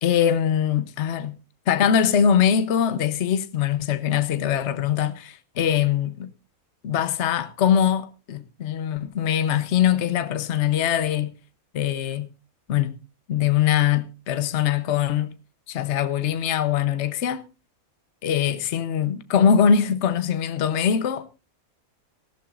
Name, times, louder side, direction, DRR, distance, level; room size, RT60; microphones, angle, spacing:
voice 1, 0.0-1.4 1.7-6.3 6.8-11.3 11.7-12.3 12.7-13.0 13.3-15.3 15.7-17.4 18.2-21.3, left 8 dB, 55° left, 1.1 m, -22 dB
19.0 x 14.5 x 2.5 m
omnidirectional pair, 1.5 m